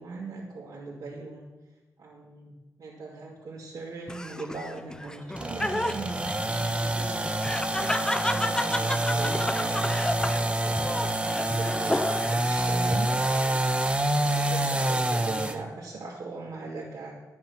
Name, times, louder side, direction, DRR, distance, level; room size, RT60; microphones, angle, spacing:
voice 1, 0.0-1.4 2.0-6.4 6.8-7.3 7.8-9.9 10.8-13.6 14.1-17.1, right 3 dB, 80° right, -6 dB, 2.4 m, -39 dB
Laughter, 4.1-12.5 12.9-13.6, left 1 dB, 10° left, 0.6 m, -32 dB
sound 1, 5.4-15.6, right 1 dB, 20° right, 1.0 m, -27 dB
11.5 x 8.7 x 5.9 m, 1.2 s
cardioid pair, 75°, 6 cm